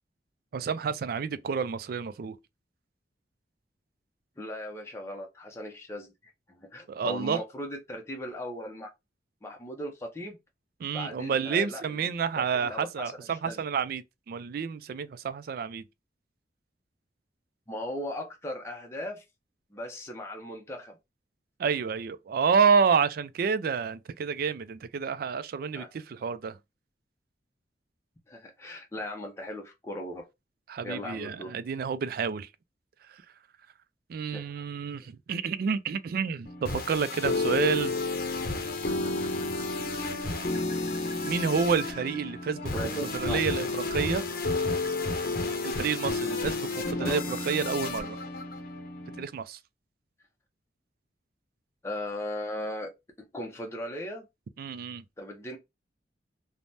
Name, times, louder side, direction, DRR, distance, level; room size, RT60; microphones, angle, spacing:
voice 1, 0.5-2.4 6.9-7.4 10.8-15.8 21.6-26.6 30.7-32.5 33.1-33.2 34.1-37.9 41.2-44.3 45.6-48.2 49.2-49.6 54.6-55.0, right 6 dB, 55° right, 0.3 m, -29 dB
voice 2, 4.4-8.9 9.4-10.4 10.9-12.1 12.4-13.1 13.4-13.6 17.7-19.2 19.7-21.0 25.7-25.9 28.3-30.3 30.8-31.5 34.3-34.7 42.7-43.4 47.0-47.2 51.8-52.9 53.2-54.3 55.2-55.6, left 1 dB, 15° left, 0.5 m, -38 dB
sound 1, 36.5-49.3, left 3 dB, 55° left, 0.7 m, -31 dB
3.3 x 2.1 x 2.6 m
head